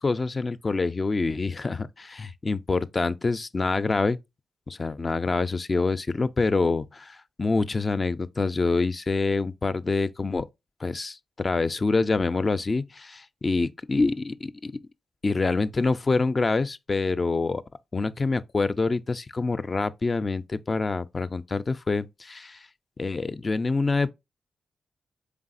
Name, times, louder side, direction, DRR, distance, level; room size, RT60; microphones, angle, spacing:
voice 1, 0.0-4.2 4.7-10.5 10.8-14.7 15.2-17.6 17.9-22.7 23.0-24.1, left 3 dB, 40° left, 0.3 m, -26 dB
4.0 x 3.4 x 2.5 m
supercardioid pair, 50°, 0 cm